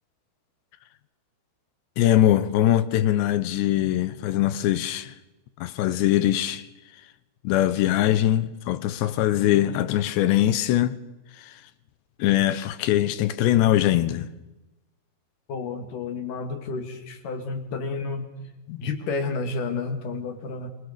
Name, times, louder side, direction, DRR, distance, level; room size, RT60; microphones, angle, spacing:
voice 1, 2.0-5.1 5.6-6.7 7.4-11.0 12.2-14.3 18.7-18.8, left 13 dB, 80° left, 3.2 m, -22 dB
voice 2, 15.5-18.5 18.8-20.7, left 4 dB, 55° left, 3.6 m, -31 dB
26.5 x 23.5 x 6.7 m
omnidirectional pair, 5.0 m